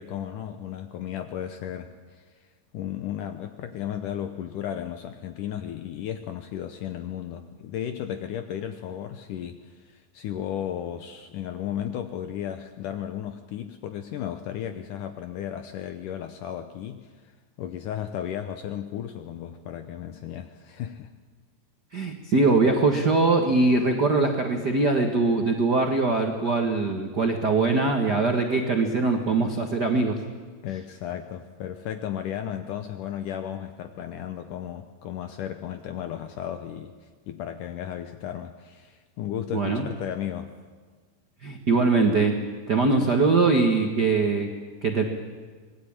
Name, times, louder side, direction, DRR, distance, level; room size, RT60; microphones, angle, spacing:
voice 1, 0.0-2.5 2.7-17.3 17.6-21.1 30.6-36.9 37.3-40.5 43.0-43.1, left 10 dB, 75° left, 8 dB, 1.9 m, -34 dB
voice 2, 21.9-30.2 39.5-39.9 41.4-42.4 42.7-44.5 44.8-45.0, right 3 dB, 90° right, 3 dB, 0.9 m, -22 dB
25.5 x 19.0 x 8.8 m, 1.5 s
omnidirectional pair, 4.7 m